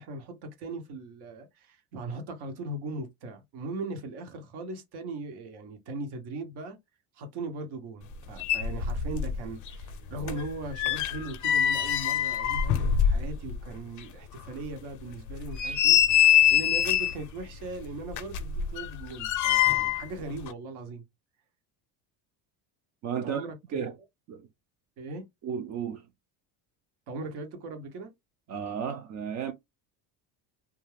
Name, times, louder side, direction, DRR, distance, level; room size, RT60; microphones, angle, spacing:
voice 1, 0.0-6.8 7.1-16.0 16.5-21.0 23.2-23.9 25.0-25.2 27.1-28.1, right 2 dB, 65° right, 1.1 m, -39 dB
sound 1, 8.1-8.2 8.4-9.4 9.7-13.6 14.0-14.1 14.6-14.7 15.3-17.2 18.1-20.1 20.4-20.5, left 10 dB, 45° left, 0.5 m, -24 dB
voice 2, 23.0-23.5 23.7-23.9 24.3-24.5 25.4-26.1 28.5-29.5, right 7 dB, 40° right, 0.4 m, -33 dB
2.3 x 2.2 x 3.2 m
cardioid pair, 130°, 42 cm